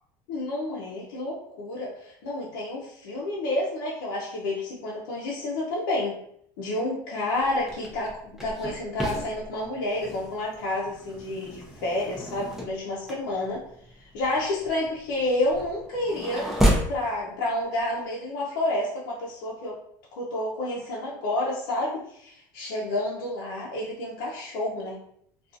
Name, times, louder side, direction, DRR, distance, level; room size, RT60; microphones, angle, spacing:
voice 1, 0.3-6.2 6.6-13.6 14.0-16.5 16.9-19.8 20.1-25.0, left 1 dB, 90° left, -5 dB, 0.5 m, -29 dB
sound 1, 7.3-17.0, equal, 5° right, 0.5 m, -31 dB
2.4 x 2.3 x 2.6 m, 0.69 s
supercardioid pair, 120°, 11 cm